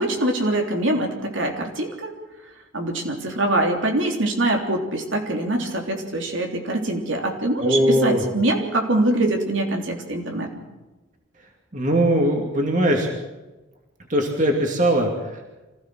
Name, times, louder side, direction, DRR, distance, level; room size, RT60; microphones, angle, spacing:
voice 1, 0.0-2.1 2.7-10.5, right 1 dB, 70° right, 2 dB, 3.4 m, -23 dB
voice 2, 7.6-8.2 11.7-13.1 14.1-15.1, right 1 dB, 40° right, 2 dB, 2.6 m, -20 dB
25.5 x 16.5 x 6.3 m, 1.1 s
head